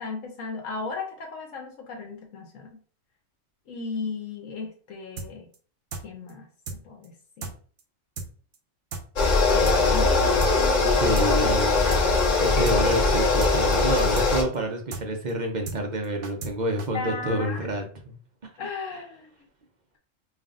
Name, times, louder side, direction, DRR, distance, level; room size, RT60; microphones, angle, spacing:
voice 1, 0.0-2.8 3.7-5.5 6.0-7.5 9.5-11.6 12.3-13.0 16.9-17.7 18.6-19.3, left 4 dB, 75° left, 1 dB, 1.1 m, -36 dB
sound 1, 5.2-5.3 5.5-5.6 5.9-6.0 6.3-6.4 6.7-6.8 7.0-7.1 7.4-7.5 7.8-7.9 8.2-8.3 8.5-8.6 8.9-9.0 9.3-9.4 9.7-9.8 10.0-10.5 10.8-10.9 11.2-11.3 11.5-11.6 11.9-12.0 12.3-12.4 12.7-12.8 13.0-13.1 13.4-13.5 13.8-13.9 14.2-14.3 14.5-14.6 14.9-15.0 15.3-15.4 15.7-15.8 16.0-16.5 16.8-16.9, right 4 dB, 70° right, 1.0 m, -35 dB
sound 2, 9.2-14.4, left 3 dB, 45° left, 0.7 m, -21 dB
voice 2, 10.9-11.9 12.4-18.2, right 1 dB, 50° right, 3 dB, 0.6 m, -28 dB
5.4 x 2.5 x 2.5 m, 0.43 s
omnidirectional pair, 1.3 m